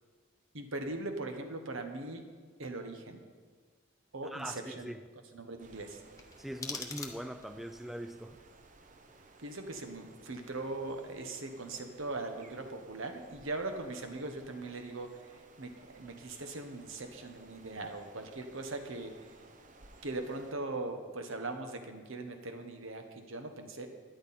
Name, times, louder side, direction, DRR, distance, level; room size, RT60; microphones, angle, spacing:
voice 1, 0.5-2.2 2.6-3.2 4.1-4.9 5.3-6.0 9.4-19.3 20.0-23.9, right 2 dB, 75° right, 6 dB, 1.2 m, -40 dB
voice 2, 4.2-5.0 6.4-8.4, equal, ahead, 8 dB, 0.3 m, -42 dB
sound 1, 5.6-20.5, right 3 dB, 40° right, 0.8 m, -58 dB
sound 2, 6.2-7.6, left 4 dB, 15° left, 0.9 m, -43 dB
12.5 x 10.5 x 4.3 m, 1.5 s
head